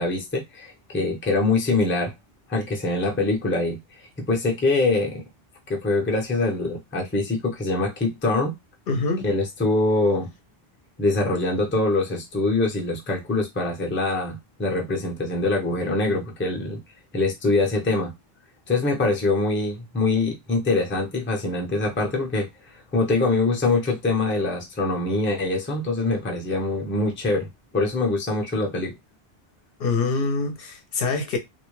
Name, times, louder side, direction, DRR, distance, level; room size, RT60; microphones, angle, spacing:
voice 1, 0.0-2.1 2.5-3.8 4.2-5.2 5.7-8.5 9.2-10.3 11.0-16.8 17.1-18.1 18.7-22.5 22.7-27.5 27.7-28.9, left 2 dB, 15° left, 0.5 m, -24 dB
voice 2, 8.9-9.3 29.8-31.4, left 3 dB, 70° left, 0.8 m, -25 dB
2.5 x 2.1 x 3.0 m
omnidirectional pair, 1.0 m